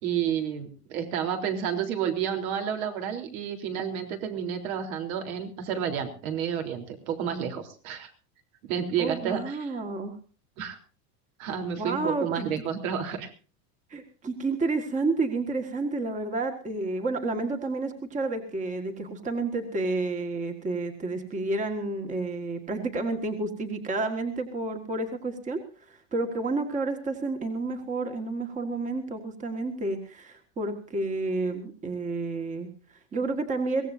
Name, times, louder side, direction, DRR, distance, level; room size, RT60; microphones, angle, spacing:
voice 1, 0.0-8.1 8.6-9.7 10.6-10.8 11.4-13.3, right 8 dB, 65° right, 5 dB, 3.8 m, -30 dB
voice 2, 9.0-10.2 11.8-12.4 13.9-33.9, right 3 dB, 15° right, 6 dB, 1.7 m, -30 dB
23.5 x 17.0 x 2.7 m, 0.37 s
supercardioid pair, 160°, 44 cm